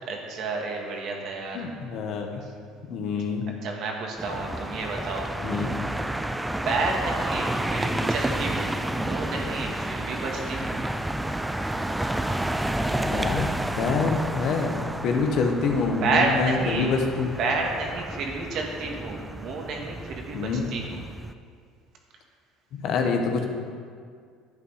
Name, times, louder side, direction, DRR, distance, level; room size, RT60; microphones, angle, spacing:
voice 1, 0.1-1.7 3.1-5.3 6.6-10.8 16.0-17.0 17.4-21.0, right 3 dB, 55° right, 1 dB, 2.0 m, -30 dB
voice 2, 1.5-2.3 2.9-3.4 5.4-5.7 13.0-13.5 13.8-17.3 20.3-20.6 22.7-23.5, left 4 dB, 60° left, 3 dB, 1.4 m, -26 dB
sound 1, 4.2-21.3, right 1 dB, 5° right, 0.4 m, -30 dB
11.5 x 8.3 x 5.0 m, 2.1 s
cardioid pair, 120°, 0 cm